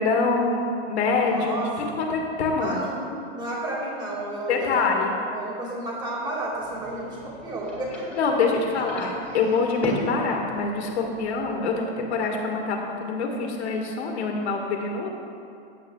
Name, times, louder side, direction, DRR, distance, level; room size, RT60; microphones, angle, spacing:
voice 1, 0.0-1.6 2.0-2.8 4.5-5.2 8.2-15.1, left 4 dB, 80° left, 1 dB, 1.7 m, -25 dB
voice 2, 1.2-1.7 2.6-3.0 3.3-4.9 5.3-8.0 9.0-9.7, right 1 dB, 15° right, -4 dB, 2.1 m, -32 dB
sound 1, 6.5-11.6, equal, 5° left, 1.7 m, -36 dB
14.5 x 8.4 x 2.3 m, 2.5 s
supercardioid pair, 155°, 33 cm